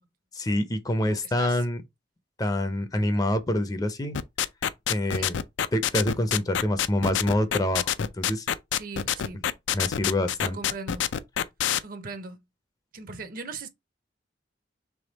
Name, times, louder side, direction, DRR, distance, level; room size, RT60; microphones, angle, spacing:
voice 1, 0.3-1.8 2.4-4.2 4.9-5.4 5.7-8.5 9.7-10.6, left 1 dB, 20° left, 0.5 m, -26 dB
voice 2, 1.0-1.6 5.1-5.3 8.7-9.5 10.4-11.0 11.8-12.4 12.9-13.7, right 4 dB, 50° right, 0.7 m, -39 dB
sound 1, 4.1-11.8, left 10 dB, 85° left, 0.4 m, -26 dB
3.5 x 3.2 x 4.0 m
head